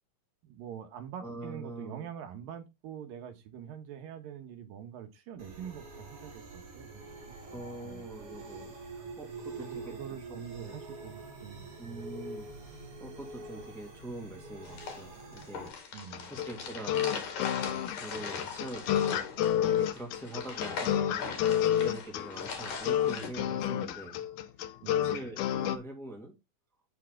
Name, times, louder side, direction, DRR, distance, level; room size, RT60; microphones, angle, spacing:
voice 1, 0.4-7.5 7.8-8.0 9.6-11.7 15.9-16.3 24.8-25.2, right 9 dB, 80° right, 3.0 m, -45 dB
voice 2, 1.2-2.1 7.5-10.0 10.3-10.8 11.8-17.0 17.6-19.3 19.6-24.2 25.0-26.3, right 2 dB, ahead, 2.0 m, -44 dB
sound 1, 5.4-15.7, right 3 dB, 40° right, 3.6 m, -45 dB
sound 2, 14.6-23.3, left 5 dB, 55° left, 3.2 m, -40 dB
sound 3, 16.1-25.8, left 10 dB, 75° left, 1.9 m, -30 dB
8.2 x 7.5 x 3.7 m
omnidirectional pair, 4.0 m